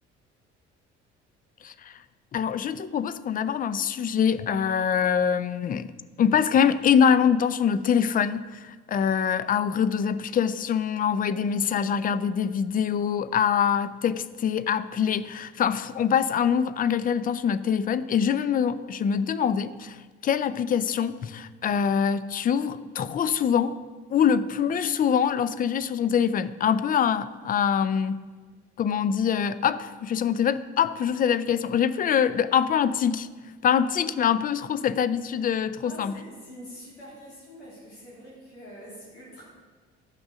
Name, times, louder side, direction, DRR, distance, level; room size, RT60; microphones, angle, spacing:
voice 1, 1.6-2.0 2.3-5.9 6.2-20.0 20.2-23.8 24.1-28.3 28.8-33.3 33.6-36.1, left 7 dB, 25° left, 15 dB, 0.4 m, -24 dB
voice 2, 35.8-39.4, equal, 85° left, -7 dB, 3.2 m, -45 dB
12.5 x 6.0 x 5.1 m, 1.4 s
figure-of-eight pair, 55°, 34 cm